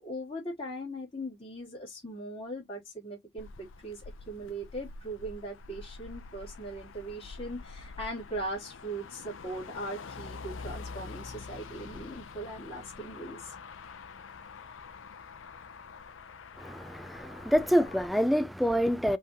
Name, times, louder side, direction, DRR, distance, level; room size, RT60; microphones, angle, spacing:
voice 1, 0.0-13.5, right 1 dB, 30° left, 3.1 m, -39 dB
Motor vehicle (road), 3.4-18.1, left 4 dB, 80° left, 0.6 m, -46 dB
voice 2, 16.6-19.2, equal, ahead, 0.4 m, -26 dB
5.7 x 3.2 x 2.8 m
head